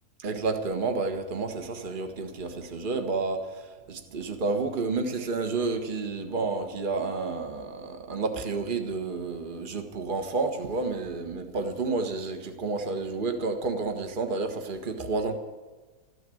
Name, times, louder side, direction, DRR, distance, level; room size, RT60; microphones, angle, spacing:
voice 1, 0.2-15.3, right 3 dB, 35° right, 6 dB, 1.5 m, -30 dB
13.5 x 13.0 x 7.8 m, 1.3 s
omnidirectional pair, 1.7 m